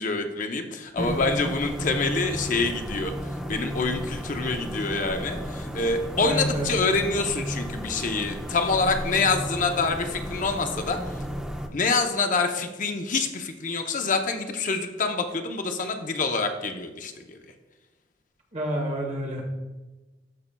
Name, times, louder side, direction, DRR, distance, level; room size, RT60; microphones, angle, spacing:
voice 1, 0.0-11.0 11.7-17.4, left 3 dB, 45° left, 5 dB, 0.6 m, -26 dB
sound 1, 1.0-11.7, equal, 5° right, 0.5 m, -34 dB
voice 2, 1.0-1.3 6.2-6.7 18.5-19.6, equal, 40° right, 0 dB, 1.6 m, -29 dB
13.0 x 5.4 x 2.2 m, 1.1 s
head